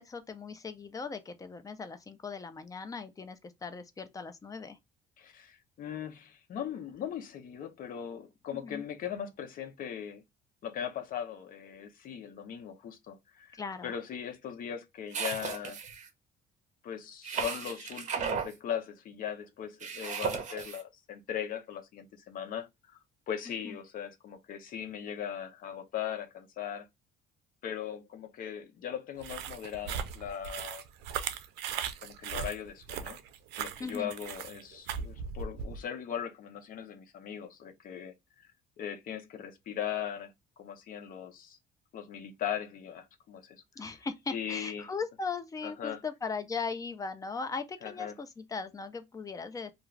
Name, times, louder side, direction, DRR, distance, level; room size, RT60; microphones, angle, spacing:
voice 1, 0.0-4.8 8.5-8.8 13.5-13.9 23.6-23.8 33.8-34.1 43.8-49.7, left 4 dB, 20° left, 0.5 m, -38 dB
voice 2, 5.2-10.2 10.6-15.8 16.8-22.7 23.3-26.9 27.6-30.8 32.0-33.2 33.6-38.5 38.8-41.6 41.9-43.6 44.3-44.9 45.6-46.0 47.8-48.1, left 9 dB, 55° left, 0.7 m, -39 dB
sound 1, 15.1-16.1 17.2-18.5 19.8-20.8, right 6 dB, 45° right, 0.8 m, -35 dB
sound 2, 29.2-35.8, right 7 dB, 85° right, 0.4 m, -38 dB
2.4 x 2.4 x 3.1 m
cardioid pair, 110°, 17 cm